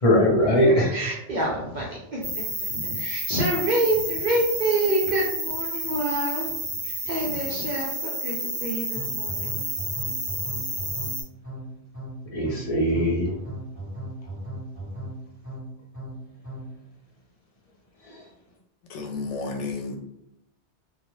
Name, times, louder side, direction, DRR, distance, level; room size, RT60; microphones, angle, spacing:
voice 1, 0.0-0.9 12.3-13.3 18.0-18.2, equal, 40° left, -3 dB, 0.5 m, -20 dB
voice 2, 0.9-2.4 2.7-6.5 7.0-9.5, right 1 dB, 55° right, -4 dB, 0.5 m, -27 dB
sound 1, 2.2-11.2, right 1 dB, 25° right, 0.9 m, -30 dB
sound 2, 8.9-16.8, right 1 dB, 20° left, 1.0 m, -37 dB
voice 3, 18.9-20.0, left 3 dB, 80° left, 1 dB, 0.9 m, -31 dB
2.3 x 2.0 x 3.0 m, 0.81 s
omnidirectional pair, 1.2 m